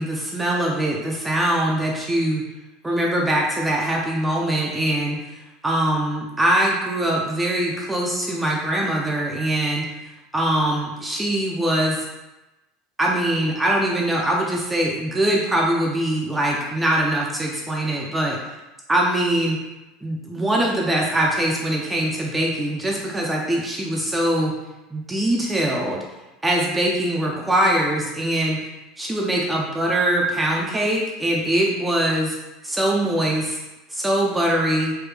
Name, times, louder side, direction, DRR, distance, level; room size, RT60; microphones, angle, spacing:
voice 1, 0.0-2.4 2.8-5.2 5.6-9.9 10.3-12.1 13.0-18.4 18.9-19.6 20.0-24.5 24.9-26.0 26.4-28.6 29.0-32.4 32.6-33.6 33.9-34.9, right 1 dB, 10° right, -2 dB, 0.4 m, -22 dB
3.3 x 2.1 x 3.2 m, 1.0 s
supercardioid pair, 135°, 0 cm